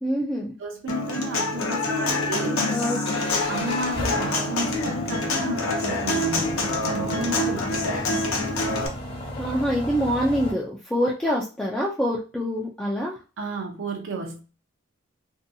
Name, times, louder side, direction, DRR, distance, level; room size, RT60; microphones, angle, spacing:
voice 1, 0.0-0.5 2.7-3.0 9.4-13.2, equal, 5° left, 0.3 m, -25 dB
voice 2, 0.6-3.0 3.5-8.0 13.4-14.4, right 1 dB, 65° right, 0.6 m, -32 dB
Human voice / Acoustic guitar, 0.9-8.9, left 2 dB, 85° left, 0.6 m, -26 dB
sound 1, 1.4-10.5, left 1 dB, 25° left, 0.7 m, -36 dB
2.6 x 2.3 x 2.6 m
head